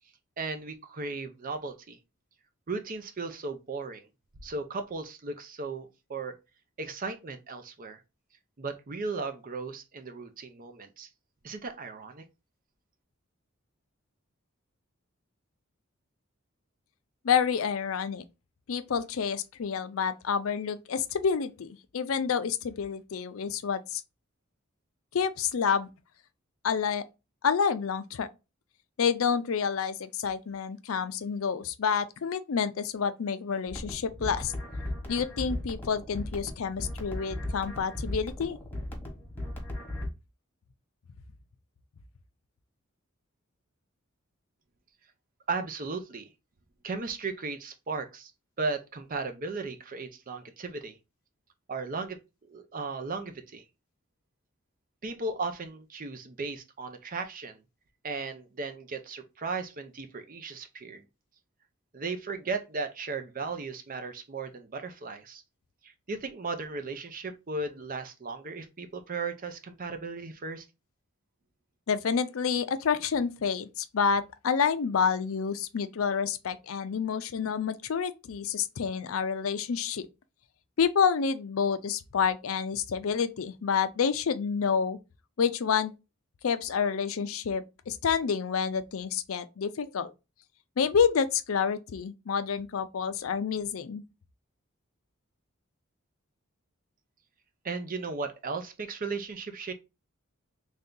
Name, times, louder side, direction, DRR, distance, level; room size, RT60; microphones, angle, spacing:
voice 1, 0.4-2.0 2.7-4.1 4.4-6.4 6.8-8.0 8.6-11.1 11.4-12.2 45.5-46.3 46.8-48.3 48.6-51.0 51.7-52.2 52.5-53.6 55.0-57.6 58.0-61.0 61.9-65.4 65.8-70.7 97.6-99.7, right 4 dB, 45° right, 0.6 m, -36 dB
voice 2, 17.2-18.2 18.7-24.0 25.1-25.9 26.6-27.0 27.4-28.3 29.0-34.5 35.1-38.6 71.9-80.1 80.8-85.0 85.4-85.9 86.4-90.1 90.8-94.0, left 6 dB, 85° left, 0.5 m, -28 dB
sound 1, 33.7-40.1, left 1 dB, 10° left, 1.2 m, -37 dB
3.3 x 2.7 x 3.7 m
head